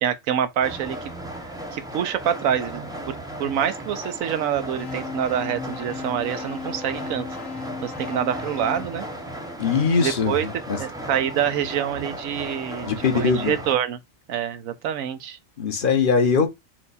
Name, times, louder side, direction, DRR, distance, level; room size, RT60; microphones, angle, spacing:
voice 1, 0.0-1.0 1.7-2.8 3.1-3.2 3.4-7.2 7.8-9.1 10.0-10.5 10.8-14.0 14.3-15.4, right 9 dB, 90° right, 1.1 m, -26 dB
sound 1, 0.6-13.7, right 1 dB, 5° right, 0.4 m, -35 dB
sound 2, 4.7-9.9, left 5 dB, 75° left, 1.3 m, -37 dB
voice 2, 9.6-10.8 12.8-13.6 15.6-16.5, left 5 dB, 45° left, 0.9 m, -21 dB
4.5 x 2.2 x 4.0 m
omnidirectional pair, 1.4 m